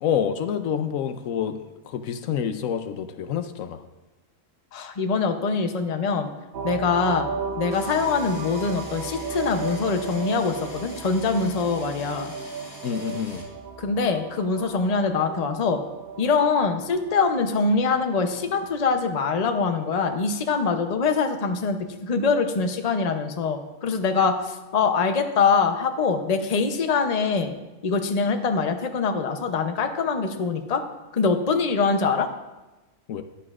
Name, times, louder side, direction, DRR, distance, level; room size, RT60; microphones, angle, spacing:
voice 1, 0.0-1.6 1.8-3.8 12.8-13.4 33.1-33.2, left 8 dB, 90° left, 9 dB, 1.1 m, -27 dB
voice 2, 4.7-6.3 6.6-7.3 7.6-12.3 13.8-15.8 16.2-21.8 22.0-27.5 27.8-30.8 31.1-32.3, left 4 dB, 35° left, 6 dB, 0.7 m, -23 dB
sound 1, 6.5-19.1, right 5 dB, 55° right, 0.9 m, -36 dB
sound 2, 7.7-13.4, equal, 10° left, 2.3 m, -44 dB
14.0 x 10.0 x 2.5 m, 1.1 s
omnidirectional pair, 1.3 m